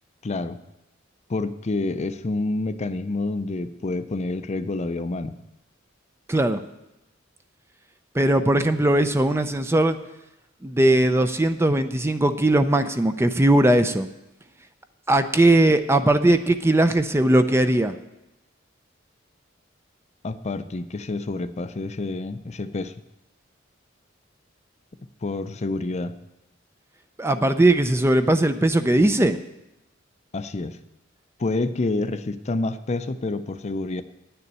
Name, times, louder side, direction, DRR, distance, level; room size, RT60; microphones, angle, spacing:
voice 1, 0.2-0.6 1.3-5.3 20.2-22.9 25.2-26.2 30.3-30.8 31.4-34.0, left 2 dB, 35° left, 11 dB, 0.5 m, -28 dB
voice 2, 6.3-6.6 8.1-10.0 10.6-14.1 15.1-18.0 27.2-29.4, right 1 dB, 15° right, 9 dB, 0.5 m, -19 dB
9.6 x 6.9 x 8.8 m, 0.91 s
head